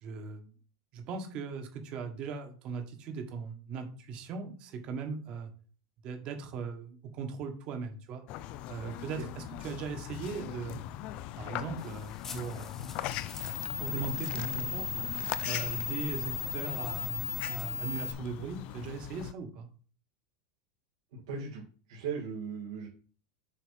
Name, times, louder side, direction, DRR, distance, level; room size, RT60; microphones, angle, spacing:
voice 1, 0.0-0.5 0.9-5.5 6.0-8.2 8.7-10.8 11.3-12.8 13.8-14.9 15.4-19.7, right 5 dB, 40° right, 6 dB, 1.6 m, -39 dB
sound 1, 8.3-19.3, left 12 dB, 45° left, 0.4 m, -40 dB
sound 2, 11.8-18.1, left 5 dB, 15° left, 1.1 m, -37 dB
voice 2, 21.1-21.6 21.9-22.9, right 5 dB, 80° right, -4 dB, 2.2 m, -37 dB
7.2 x 4.1 x 5.8 m, 0.40 s
supercardioid pair, 150°, 3 cm